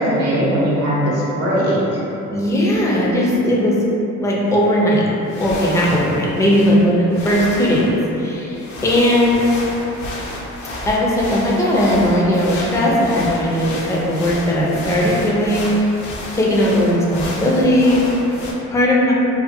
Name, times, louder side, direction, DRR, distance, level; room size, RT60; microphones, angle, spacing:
voice 1, 0.0-2.0, equal, 55° right, -8 dB, 0.8 m, -19 dB
voice 2, 2.3-3.8 4.2-5.1 5.4-9.5 10.8-15.9 16.3-18.1 18.7-19.1, equal, 10° left, -5 dB, 0.4 m, -17 dB
sound 1, 4.5-4.6 5.2-18.5, left 1 dB, 70° left, 0.6 m, -31 dB
2.7 x 2.5 x 2.5 m, 3.0 s
cardioid pair, 90°, 30 cm